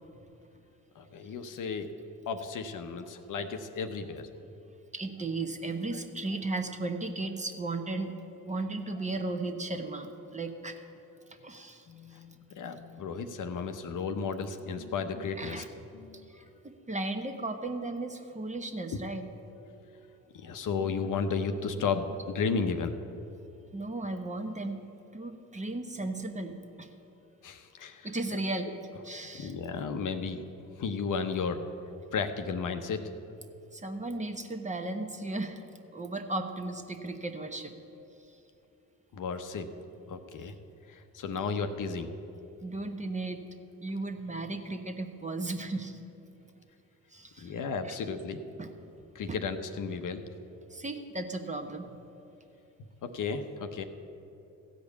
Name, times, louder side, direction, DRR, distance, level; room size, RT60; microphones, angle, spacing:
voice 1, 1.0-1.9 2.3-4.3 11.9-15.6 15.9-16.3 19.5-19.9 20.3-22.9 27.4-28.1 29.4-30.4 30.8-31.7 32.1-33.0 39.1-39.7 40.1-40.5 40.9-42.1 47.4-48.4 49.1-50.2 53.0-53.8, left 5 dB, 55° left, 8 dB, 0.9 m, -34 dB
voice 2, 4.9-8.1 8.4-10.8 11.3-12.2 15.4-15.9 16.3-19.3 23.7-24.8 25.1-26.9 28.0-28.7 29.0-29.5 33.7-35.6 35.9-37.8 42.6-43.4 43.8-46.0 47.1-47.6 47.8-48.0 48.6-48.7 49.3-49.4 50.7-51.9, right 2 dB, 20° right, 6 dB, 1.0 m, -35 dB
15.0 x 5.2 x 8.3 m, 2.8 s
supercardioid pair, 60°, 37 cm